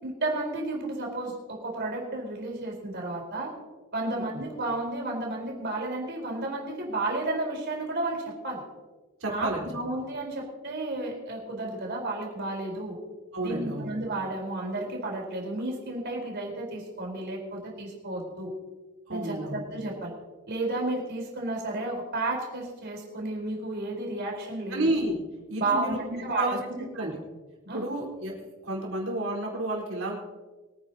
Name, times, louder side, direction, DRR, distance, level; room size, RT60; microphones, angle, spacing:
voice 1, 0.0-3.5 3.9-8.6 9.3-13.0 13.4-18.5 19.1-20.1 20.5-24.9 25.6-26.6 27.0-27.1 27.7-27.8, right 2 dB, 55° right, -1 dB, 4.4 m, -32 dB
voice 2, 9.2-9.6 13.3-13.9 19.1-19.6 24.7-25.2 25.5-27.2 27.7-28.3 28.6-30.2, right 1 dB, 80° right, -2 dB, 4.4 m, -31 dB
24.5 x 10.0 x 2.9 m, 1.2 s
head